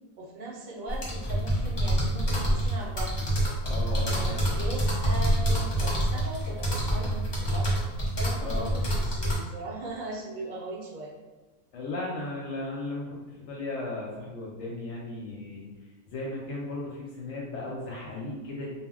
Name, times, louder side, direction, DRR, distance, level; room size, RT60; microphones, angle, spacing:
voice 1, 0.2-3.2 4.1-7.7 8.2-11.1, right 2 dB, 60° right, -3 dB, 0.5 m, -39 dB
sound 1, 0.9-9.4, right 1 dB, 35° left, 0.4 m, -27 dB
voice 2, 3.6-4.6 8.4-8.8 11.7-15.7 16.1-18.8, left 2 dB, 65° left, -4 dB, 0.8 m, -36 dB
2.2 x 2.1 x 3.6 m, 1.3 s
omnidirectional pair, 1.4 m